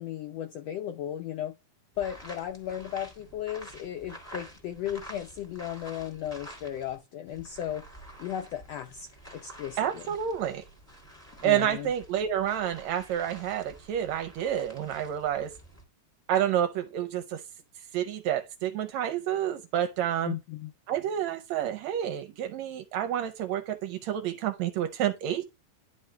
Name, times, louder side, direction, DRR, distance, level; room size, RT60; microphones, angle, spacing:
voice 1, 0.0-1.5 2.0-7.8 8.2-10.1 11.4-11.9 20.2-20.7, left 10 dB, 80° left, 1.5 m, -35 dB
sound 1, 1.9-7.0 7.3-15.8, right 1 dB, 5° left, 1.8 m, -49 dB
voice 2, 9.8-10.6 11.4-15.5 16.3-17.4 17.9-20.4 20.9-25.4, right 10 dB, 75° right, 1.7 m, -29 dB
10.5 x 3.8 x 3.2 m
omnidirectional pair, 3.6 m